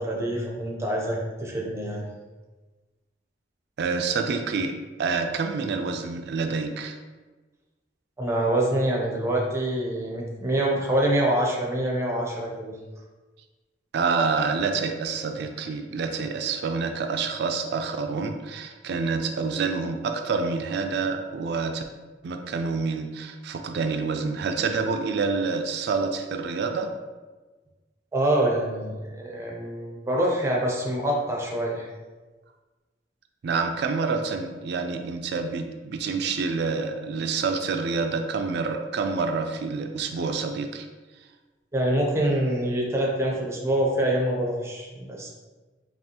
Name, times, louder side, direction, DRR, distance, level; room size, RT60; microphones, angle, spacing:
voice 1, 0.0-2.0 8.2-12.8 28.1-31.9 41.7-45.3, right 1 dB, 15° right, -2 dB, 0.7 m, -25 dB
voice 2, 3.8-4.7 5.0-7.0 13.9-21.8 22.2-26.9 33.4-40.9, right 4 dB, 65° right, 6 dB, 0.3 m, -27 dB
5.3 x 2.4 x 2.9 m, 1.3 s
head